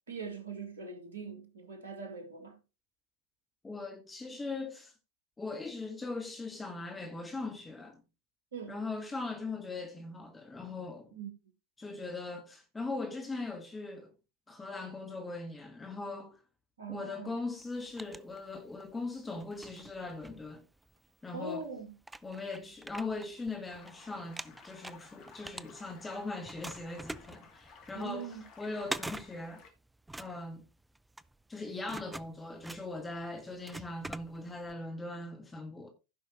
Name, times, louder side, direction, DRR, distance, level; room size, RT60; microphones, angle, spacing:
voice 1, 0.1-2.6 8.5-8.8 11.1-11.3 16.8-17.4 21.3-21.9 27.9-28.4, right 4 dB, 70° right, 2.3 m, -42 dB
voice 2, 3.6-4.9 5.4-8.0 8.7-11.2 11.8-14.1 14.5-16.4 16.9-20.6 21.2-21.6 22.2-28.3 28.6-29.6 30.2-30.6 31.5-35.9, left 3 dB, 10° left, 1.6 m, -40 dB
sound 1, 17.6-18.9 19.4-21.1 21.6-21.7 22.0-23.9 24.2-26.1 26.5-34.7, right 2 dB, 5° right, 0.5 m, -45 dB
sound 2, 23.7-29.7, left 5 dB, 40° left, 2.6 m, -56 dB
16.0 x 5.5 x 3.0 m
figure-of-eight pair, 85°, 0 cm